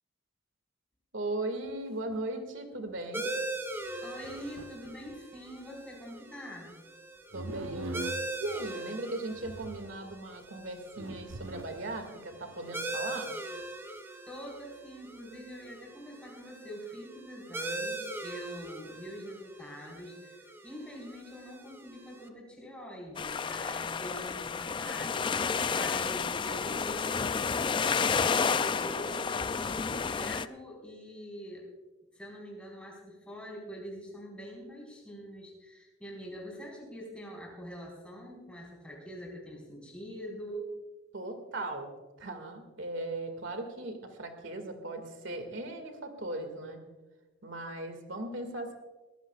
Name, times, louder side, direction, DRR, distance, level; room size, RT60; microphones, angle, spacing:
voice 1, 1.1-3.3 7.3-8.0 8.4-13.3 41.1-41.9 42.2-46.8 47.4-48.7, right 2 dB, 70° right, 6 dB, 2.1 m, -38 dB
sound 1, 1.7-1.8 2.1-2.2 2.9-3.0 3.9-5.4 7.3-8.7 9.3-10.1 10.6-10.7 11.0-12.0 12.3-12.9, right 2 dB, 85° right, 0.9 m, -42 dB
sound 2, 3.1-22.3, right 2 dB, 10° right, 0.8 m, -41 dB
voice 2, 4.0-6.7 14.3-31.6 32.1-40.7, equal, 5° left, -3 dB, 4.6 m, -44 dB
sound 3, 23.2-30.5, left 5 dB, 25° left, 0.3 m, -30 dB
22.0 x 15.5 x 2.4 m, 1.2 s
head